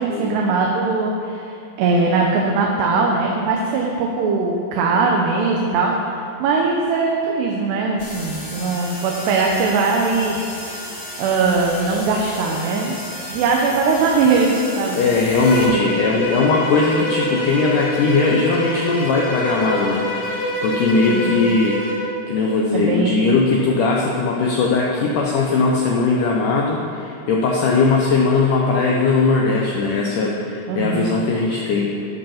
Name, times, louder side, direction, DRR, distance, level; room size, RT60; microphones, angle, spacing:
voice 1, 0.0-10.4 10.6-13.0 13.3-15.0 15.7-15.8 21.1-21.4 22.7-23.2 30.7-31.2, right 4 dB, 80° right, 0 dB, 2.9 m, -20 dB
sound 1, 8.0-15.6, left 1 dB, 50° left, 1.0 m, -34 dB
voice 2, 15.0-32.1, left 3 dB, 90° left, -2 dB, 1.8 m, -19 dB
Bowed string instrument, 15.3-22.1, equal, 65° left, 3.1 m, -26 dB
14.5 x 5.2 x 5.7 m, 2.6 s
omnidirectional pair, 4.8 m